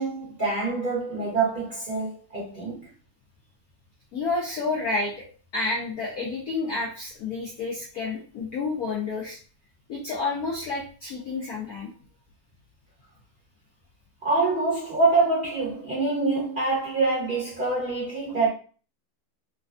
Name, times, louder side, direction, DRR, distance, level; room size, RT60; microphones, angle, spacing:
voice 1, 0.0-2.9 14.2-18.5, right 3 dB, 35° right, 0.9 m, -25 dB
voice 2, 4.1-5.2 5.5-9.4 9.9-11.9, left 3 dB, 65° left, 0.9 m, -30 dB
3.2 x 2.2 x 2.4 m
omnidirectional pair, 2.2 m